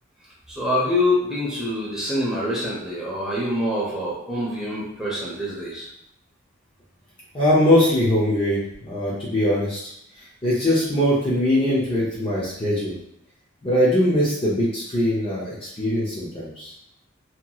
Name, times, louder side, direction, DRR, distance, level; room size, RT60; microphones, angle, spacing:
voice 1, 0.5-5.9, left 1 dB, 5° right, -7 dB, 0.8 m, -25 dB
voice 2, 7.3-9.8 10.2-13.0 13.6-16.7, left 1 dB, 25° left, -7 dB, 0.6 m, -21 dB
2.9 x 2.9 x 2.3 m, 0.75 s
head